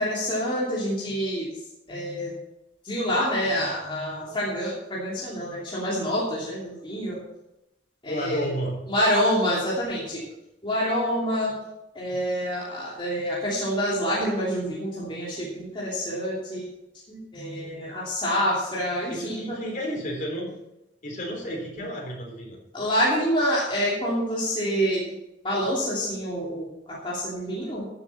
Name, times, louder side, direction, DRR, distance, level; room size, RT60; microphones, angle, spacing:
voice 1, 0.0-1.5 1.9-2.3 2.8-7.2 8.0-8.5 8.9-10.2 10.6-11.5 11.9-16.7 17.1-19.6 22.7-25.2 25.4-27.9, equal, 30° left, -6 dB, 2.9 m, -27 dB
voice 2, 8.1-8.8 19.1-20.5 21.0-22.6, equal, 45° left, -1 dB, 4.1 m, -31 dB
14.5 x 8.0 x 4.3 m, 0.90 s
head